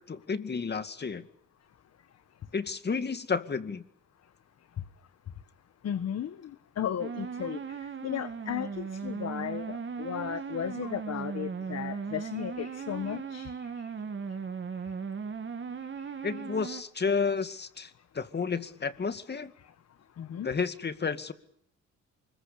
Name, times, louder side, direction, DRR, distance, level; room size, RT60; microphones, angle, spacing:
voice 1, 0.1-1.3 2.5-3.8 16.2-19.5 20.4-21.3, left 5 dB, 35° left, 11 dB, 2.3 m, -31 dB
voice 2, 5.8-6.5 6.8-7.6 8.0-13.5 20.2-20.5, left 9 dB, 55° left, 12 dB, 1.5 m, -35 dB
sound 1, 7.0-16.8, right 5 dB, 40° right, 2.4 m, -37 dB
25.0 x 22.0 x 8.6 m, 0.67 s
cardioid pair, 90°, 30 cm